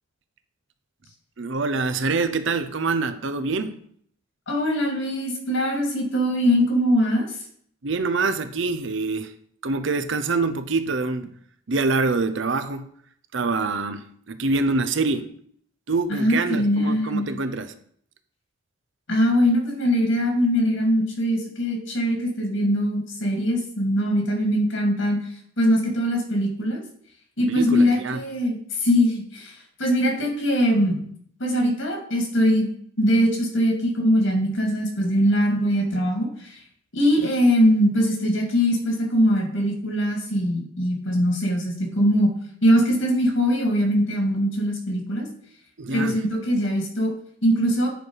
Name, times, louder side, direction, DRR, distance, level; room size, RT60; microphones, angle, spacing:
voice 1, 1.4-3.8 7.8-9.3 9.6-11.4 11.7-12.9 13.3-15.3 15.9-17.7 27.5-28.2 45.8-46.2, right 3 dB, 60° right, 0.7 m, -25 dB
voice 2, 4.5-7.3 16.1-17.3 19.1-25.2 25.6-26.8 27.4-29.5 29.8-31.0 31.4-32.7 33.0-36.6 36.9-42.3 42.6-45.3 45.9-47.1 47.4-47.9, equal, 65° left, 2.5 m, -22 dB
10.0 x 4.7 x 4.9 m
head